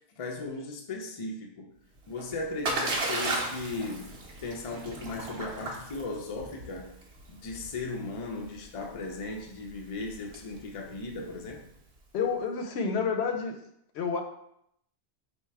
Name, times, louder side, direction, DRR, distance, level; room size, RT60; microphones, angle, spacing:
voice 1, 0.2-1.7 2.1-4.2 4.4-6.9 7.3-11.6, left 3 dB, 40° left, 2 dB, 0.5 m, -37 dB
Splash splatter, 1.9-11.8, right 2 dB, 75° right, 1.1 m, -36 dB
voice 2, 12.1-13.5 13.9-14.2, left 5 dB, 80° left, 4 dB, 0.9 m, -29 dB
3.3 x 2.7 x 4.6 m, 0.75 s
omnidirectional pair, 1.1 m